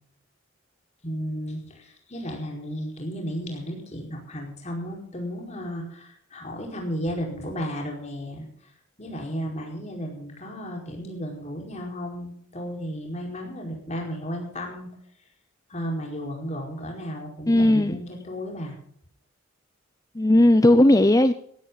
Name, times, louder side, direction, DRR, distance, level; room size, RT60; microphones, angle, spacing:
voice 1, 1.0-8.5 9.0-14.9 15.7-18.7, equal, 30° left, 0 dB, 4.9 m, -34 dB
voice 2, 17.5-18.0 20.2-21.3, left 1 dB, 15° left, 10 dB, 0.6 m, -17 dB
16.5 x 14.5 x 4.0 m, 0.65 s
head